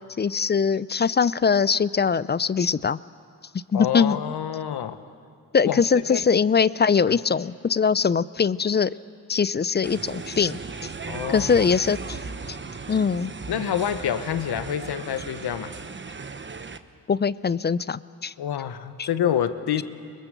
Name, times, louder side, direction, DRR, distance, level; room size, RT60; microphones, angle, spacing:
voice 1, 0.2-3.0 3.7-4.2 5.5-8.9 9.3-10.6 11.3-12.2 12.9-13.3 17.1-18.3 19.0-19.1, left 6 dB, 25° left, 19 dB, 0.5 m, -22 dB
voice 2, 3.7-5.0 5.6-6.2 7.0-7.2 11.1-11.8 13.5-15.7 18.4-19.8, left 9 dB, 65° left, 11 dB, 1.3 m, -27 dB
sound 1, 9.8-16.8, right 4 dB, 25° right, 1.1 m, -37 dB
24.0 x 20.5 x 6.9 m, 2.3 s
supercardioid pair, 55°, 41 cm